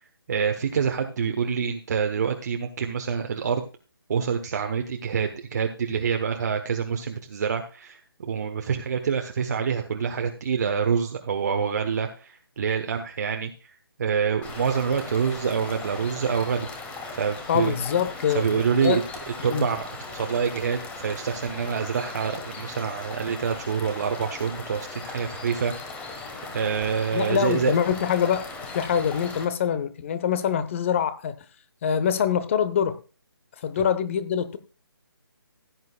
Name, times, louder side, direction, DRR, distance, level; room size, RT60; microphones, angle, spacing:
voice 1, 0.3-3.6 4.1-13.7 14.0-16.7 17.1-17.7 18.3-19.0 19.4-26.2 26.5-27.7, right 6 dB, 45° right, 1.2 m, -26 dB
sound 1, 14.4-29.4, left 3 dB, 10° left, 1.4 m, -38 dB
voice 2, 17.5-19.0 19.5-19.7 27.1-31.3 31.8-33.0 33.6-34.6, left 8 dB, 30° left, 1.0 m, -25 dB
16.0 x 9.6 x 2.4 m
figure-of-eight pair, 150°, 13 cm